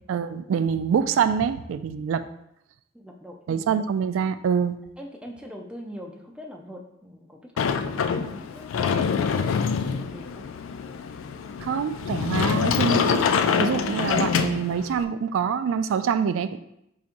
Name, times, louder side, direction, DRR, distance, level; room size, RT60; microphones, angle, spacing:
voice 1, 0.1-2.2 3.5-4.8 11.6-13.2 13.6-16.6, right 7 dB, 80° right, 11 dB, 0.3 m, -25 dB
voice 2, 2.9-3.4 5.0-10.5, equal, 5° right, 1 dB, 0.5 m, -43 dB
Sliding door, 7.6-15.0, left 6 dB, 80° left, 0.3 m, -25 dB
4.8 x 4.1 x 2.5 m, 0.81 s
head